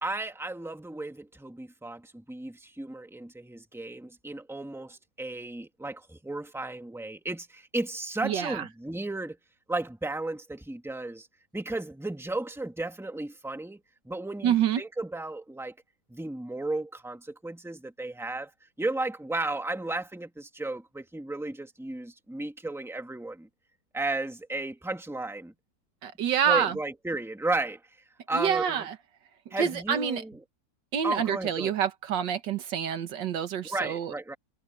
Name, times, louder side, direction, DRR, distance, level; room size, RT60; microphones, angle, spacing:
voice 1, 0.0-9.4 9.7-11.3 11.5-15.7 16.1-18.5 18.8-23.5 23.9-25.5 26.5-27.8 28.3-28.9 29.5-30.4 31.0-31.7 33.7-34.4, right 2 dB, ahead, 1.8 m, -34 dB
voice 2, 8.2-8.6 14.4-14.8 26.0-26.8 28.3-29.0 29.6-30.2 30.9-34.1, right 8 dB, 80° right, 1.9 m, -27 dB
omnidirectional pair, 1.9 m